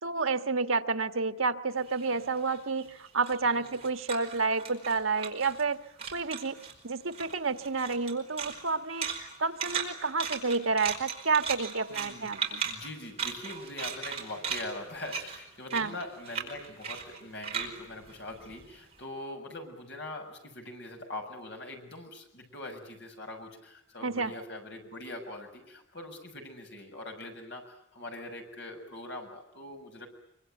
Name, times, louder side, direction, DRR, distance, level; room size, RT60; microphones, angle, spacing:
voice 1, 0.0-2.9 3.1-5.8 6.1-6.6 6.8-12.6 15.7-15.9 24.0-24.3, right 4 dB, 85° right, 9 dB, 1.5 m, -30 dB
sound 1, 1.8-5.7 6.0-6.8 7.1-18.9, right 6 dB, 30° right, 5.0 m, -38 dB
voice 2, 3.4-3.8 11.9-12.3 12.6-30.1, left 2 dB, 55° left, 3 dB, 6.8 m, -42 dB
25.5 x 25.0 x 9.1 m, 0.79 s
head